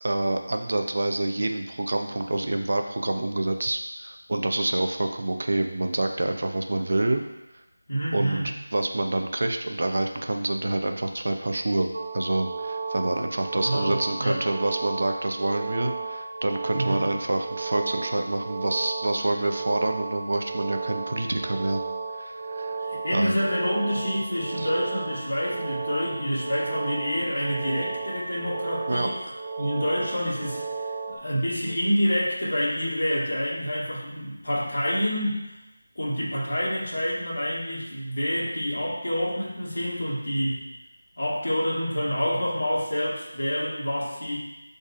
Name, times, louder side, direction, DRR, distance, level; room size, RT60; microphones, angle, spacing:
voice 1, 0.0-7.2 8.1-11.9 12.1-21.8 22.1-22.8 23.1-23.3 24.6-24.7 28.9-29.1, right 2 dB, 45° right, 5 dB, 0.6 m, -27 dB
voice 2, 7.9-8.5 13.6-14.4 16.7-17.1 22.8-29.2 29.6-35.5 36.0-40.7 41.2-44.4, equal, 60° left, -6 dB, 2.4 m, -27 dB
sound 1, 11.9-31.1, right 4 dB, 75° right, 1.2 m, -34 dB
11.5 x 4.0 x 2.5 m, 0.98 s
figure-of-eight pair, 180°, 0 cm